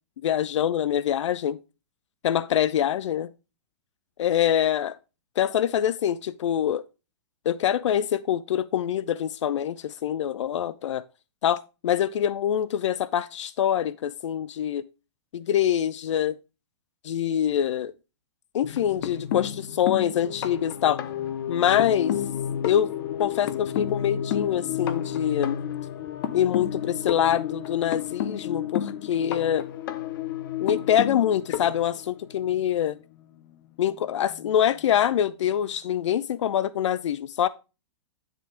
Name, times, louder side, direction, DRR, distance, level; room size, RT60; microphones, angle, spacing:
voice 1, 0.2-1.6 2.2-3.3 4.2-5.0 5.4-6.8 7.5-11.0 11.4-14.8 15.3-16.4 17.0-17.9 18.5-21.0 21.5-22.2 22.6-22.9 23.2-25.6 26.3-29.7 30.6-33.0 33.8-37.5, left 10 dB, 85° left, 0.4 m, -25 dB
sound 1, 18.6-32.6 33.9-34.0 34.3-34.5, left 10 dB, 50° left, 0.8 m, -31 dB
10.0 x 3.4 x 5.0 m
hypercardioid pair, 155°, 15 cm